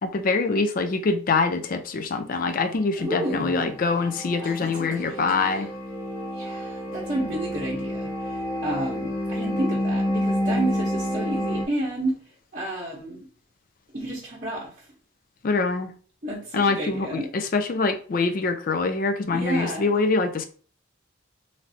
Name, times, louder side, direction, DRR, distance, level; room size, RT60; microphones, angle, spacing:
voice 1, 0.0-5.7 15.4-15.9 16.5-20.4, left 4 dB, 40° left, 0.3 m, -24 dB
voice 2, 3.0-3.8 4.4-5.7 6.3-12.2 12.5-13.2 13.9-14.7 16.2-17.3 19.3-19.9, right 1 dB, 40° right, 0.8 m, -31 dB
sound 1, 3.1-11.7, left 1 dB, 85° left, 1.1 m, -29 dB
3.2 x 2.6 x 2.7 m
head